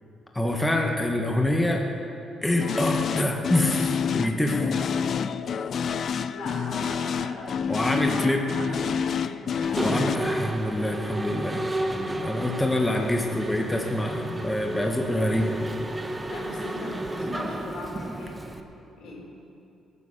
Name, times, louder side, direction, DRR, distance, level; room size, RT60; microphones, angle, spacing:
voice 1, 0.3-1.9 2.4-4.7 7.7-8.5 9.8-15.5, left 1 dB, 10° left, 1 dB, 1.5 m, -26 dB
sound 1, 2.6-10.2, left 7 dB, 55° left, 0.5 m, -28 dB
voice 2, 6.3-8.3 8.5-9.3 9.6-10.3 16.3-18.4 18.9-19.2, left 2 dB, 80° left, -2 dB, 4.0 m, -39 dB
Mechanisms, 9.6-18.6, right 1 dB, 20° right, 1.2 m, -32 dB
18.0 x 9.8 x 6.9 m, 2.7 s
cardioid pair, 90°, 0 cm